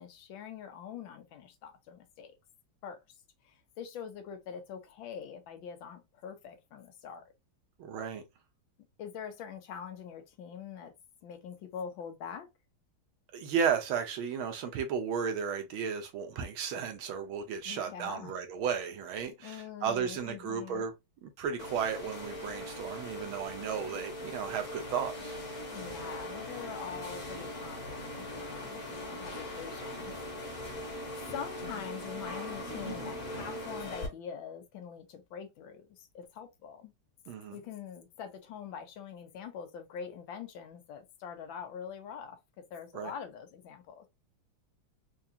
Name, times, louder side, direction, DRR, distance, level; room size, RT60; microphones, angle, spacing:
voice 1, 0.0-2.3 2.8-3.0 3.4-7.3 9.0-10.9 11.2-12.5 17.6-18.3 19.4-20.8 25.7-30.6 31.3-36.9 37.5-44.0, left 7 dB, 75° left, 1.5 m, -44 dB
voice 2, 7.8-8.2 13.3-20.9 21.2-25.4 37.3-37.6 42.9-43.1, right 7 dB, 80° right, 1.7 m, -34 dB
sound 1, 21.6-34.1, left 1 dB, 40° left, 1.7 m, -40 dB
4.6 x 2.4 x 2.7 m
omnidirectional pair, 2.2 m